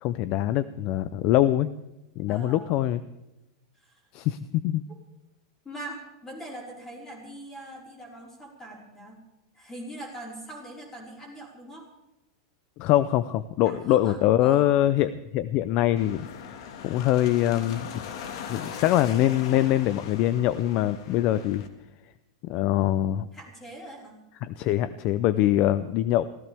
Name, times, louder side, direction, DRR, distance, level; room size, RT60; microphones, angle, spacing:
voice 1, 0.0-1.7 2.2-3.0 4.1-4.8 12.8-16.6 16.8-17.9 18.5-21.6 22.4-23.2 24.4-26.3, left 13 dB, 35° left, 15 dB, 0.5 m, -23 dB
voice 2, 2.3-2.7 3.7-4.1 5.6-9.2 9.5-11.9 13.6-14.7 23.3-24.2, right 1 dB, 10° left, -1 dB, 4.7 m, -42 dB
sound 1, 16.0-21.7, left 7 dB, 60° left, 1.7 m, -40 dB
24.5 x 16.0 x 3.5 m, 0.96 s
supercardioid pair, 155°, 3 cm